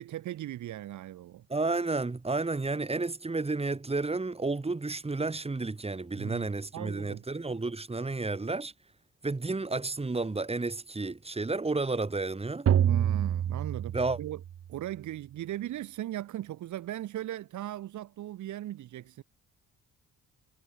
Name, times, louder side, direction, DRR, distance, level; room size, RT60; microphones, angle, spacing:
voice 1, 0.0-1.5 6.2-7.2 12.8-14.4 14.7-19.2, right 13 dB, 75° right, 1.6 m, -38 dB
voice 2, 1.5-8.7 9.2-12.7 13.9-14.2, right 3 dB, 20° right, 3.5 m, -31 dB
sound 1, 12.7-14.6, right 10 dB, 50° right, 1.0 m, -27 dB
cardioid pair, 90°, 30 cm